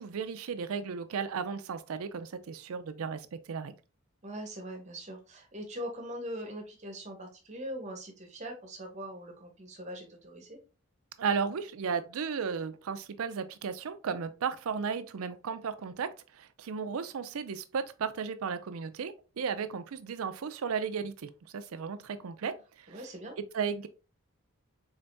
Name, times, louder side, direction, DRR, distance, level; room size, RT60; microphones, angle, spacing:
voice 1, 0.0-3.7 11.2-23.0 23.5-23.9, right 6 dB, 80° right, 0.4 m, -35 dB
voice 2, 4.2-10.6 22.9-23.4, equal, 30° right, 0.9 m, -41 dB
3.8 x 3.4 x 2.6 m
head